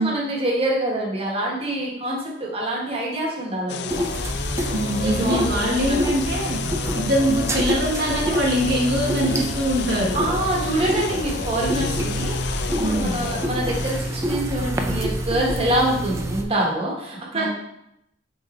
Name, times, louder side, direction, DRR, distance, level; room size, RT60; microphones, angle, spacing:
voice 1, 0.0-4.2 5.0-6.0 6.4-6.7 10.1-17.5, right 1 dB, 30° right, -3 dB, 1.5 m, -26 dB
sound 1, 3.7-15.1, left 7 dB, 60° left, 0.3 m, -32 dB
sound 2, 3.9-16.4, right 1 dB, 15° right, 0.4 m, -27 dB
voice 2, 4.7-6.7 7.0-10.2 12.8-13.3 17.3-17.5, equal, 65° right, -3 dB, 1.2 m, -23 dB
6.2 x 3.8 x 4.3 m, 0.80 s
head